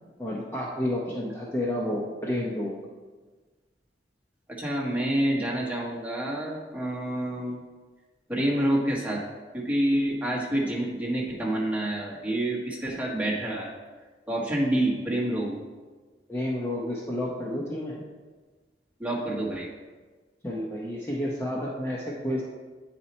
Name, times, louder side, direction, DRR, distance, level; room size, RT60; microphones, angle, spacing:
voice 1, 0.2-2.7 16.3-17.9 20.4-22.4, left 1 dB, 15° left, -4 dB, 0.8 m, -30 dB
voice 2, 4.5-7.6 8.3-9.2 9.5-13.7 14.3-15.6 19.0-19.7, right 1 dB, 10° right, -5 dB, 1.4 m, -27 dB
9.0 x 4.3 x 4.2 m, 1.4 s
head